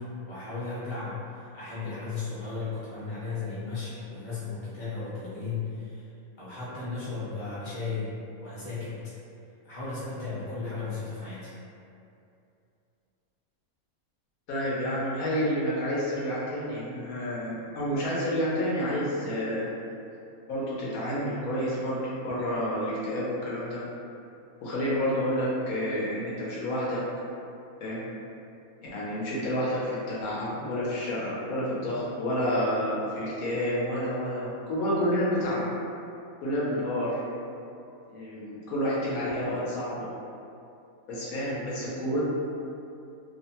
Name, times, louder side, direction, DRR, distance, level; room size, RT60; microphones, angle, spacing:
voice 1, 0.0-6.1 6.4-8.1 8.4-9.0 9.6-11.5, left 4 dB, 25° left, -12 dB, 0.8 m, -35 dB
voice 2, 14.5-19.7 20.5-23.8 24.6-27.0 27.8-28.0 28.9-35.7 36.4-37.2 38.1-40.1 41.1-42.2, equal, 80° left, -7 dB, 1.1 m, -29 dB
2.9 x 2.1 x 2.7 m, 2.6 s
omnidirectional pair, 1.5 m